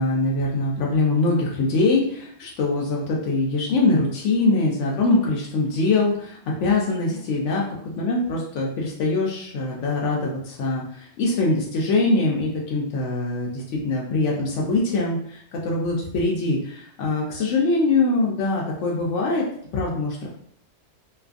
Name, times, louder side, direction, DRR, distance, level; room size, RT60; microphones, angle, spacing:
voice 1, 0.0-19.4 19.7-20.3, left 3 dB, 85° left, -3 dB, 0.9 m, -23 dB
2.6 x 2.4 x 2.4 m, 0.65 s
omnidirectional pair, 1.2 m